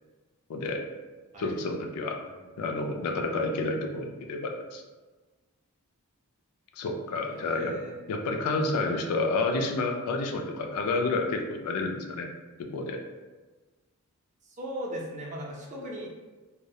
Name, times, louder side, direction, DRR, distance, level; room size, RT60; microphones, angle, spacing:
voice 1, 0.5-0.8 1.4-2.2 2.6-4.8 6.8-7.8 8.1-12.3 12.6-13.0, left 3 dB, 85° left, 4 dB, 0.3 m, -29 dB
voice 2, 7.3-8.0 14.4-16.1, equal, 35° right, -2 dB, 0.4 m, -38 dB
2.3 x 2.0 x 2.7 m, 1.3 s
head